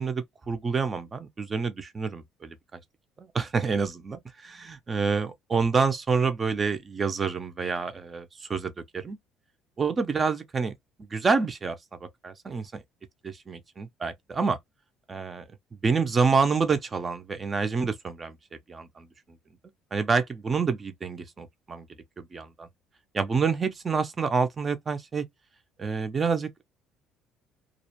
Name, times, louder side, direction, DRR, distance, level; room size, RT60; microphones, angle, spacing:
voice 1, 0.0-2.6 3.2-9.2 9.8-10.7 11.1-12.8 13.2-14.6 15.1-15.4 15.8-18.4 18.7-19.1 19.9-21.9 22.2-22.7 23.1-25.2 25.8-26.6, right 5 dB, 20° right, 0.4 m, -28 dB
2.4 x 2.0 x 2.8 m
cardioid pair, 160°, 0 cm